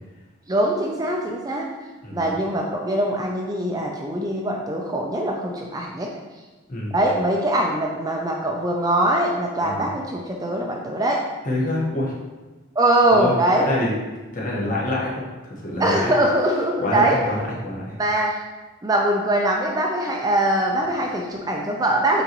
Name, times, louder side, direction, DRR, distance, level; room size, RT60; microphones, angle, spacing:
voice 1, 0.5-1.7 2.1-6.2 6.9-11.3 12.8-13.7 15.8-17.2 18.0-18.4 18.8-22.2, right 1 dB, 20° right, 0 dB, 0.5 m, -22 dB
voice 2, 2.0-2.4 6.7-6.9 9.6-9.8 11.4-12.1 13.1-13.9 14.3-16.1 16.8-17.8, left 1 dB, 40° left, -5 dB, 1.4 m, -26 dB
8.4 x 3.9 x 3.0 m, 1.2 s
head